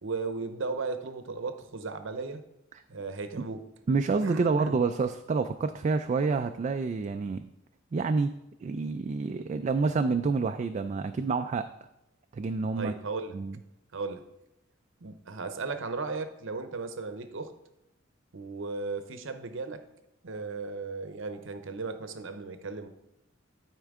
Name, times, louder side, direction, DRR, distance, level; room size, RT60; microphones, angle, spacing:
voice 1, 0.0-2.4 2.9-3.7 4.2-4.8 12.8-13.4 13.9-14.2 15.0-17.5 18.3-19.8 20.2-22.9, right 4 dB, 70° right, 9 dB, 0.7 m, -36 dB
voice 2, 3.9-7.4 7.9-8.3 8.6-11.7 12.3-12.9 13.3-13.5, right 4 dB, 35° right, 7 dB, 0.3 m, -28 dB
12.5 x 4.5 x 3.6 m, 0.87 s
head